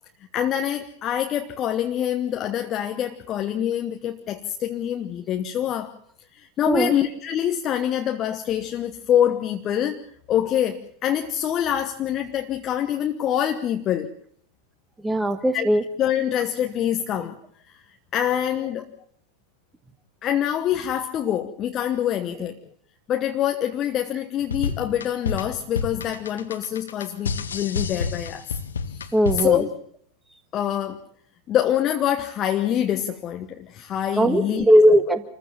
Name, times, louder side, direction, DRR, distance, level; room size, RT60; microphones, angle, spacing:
voice 1, 0.3-5.9 6.3-10.0 10.3-14.1 15.5-15.7 16.0-17.4 17.7-17.8 18.1-18.9 20.2-22.6 23.1-28.5 28.9-29.7 30.5-31.0 31.5-34.6, left 10 dB, 30° left, 6 dB, 1.2 m, -25 dB
voice 2, 15.0-15.8 29.1-29.6 34.2-35.2, equal, 5° right, 10 dB, 1.9 m, -18 dB
sound 1, 24.4-29.7, left 5 dB, 70° left, 1.2 m, -29 dB
27.0 x 15.0 x 7.3 m, 0.62 s
figure-of-eight pair, 90°, 0 cm